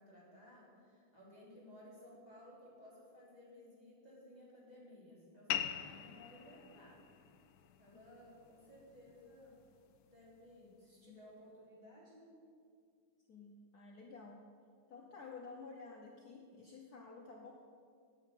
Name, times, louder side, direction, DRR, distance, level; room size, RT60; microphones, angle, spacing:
voice 1, 0.0-7.0 7.8-9.5 10.1-12.3, left 1 dB, 20° right, -6 dB, 3.6 m, -58 dB
sound 1, 5.5-10.5, left 10 dB, 75° left, 0.9 m, -45 dB
voice 2, 13.3-14.4 14.9-17.5, left 4 dB, 55° left, 0 dB, 1.3 m, -52 dB
9.5 x 8.4 x 8.5 m, 2.1 s
omnidirectional pair, 2.2 m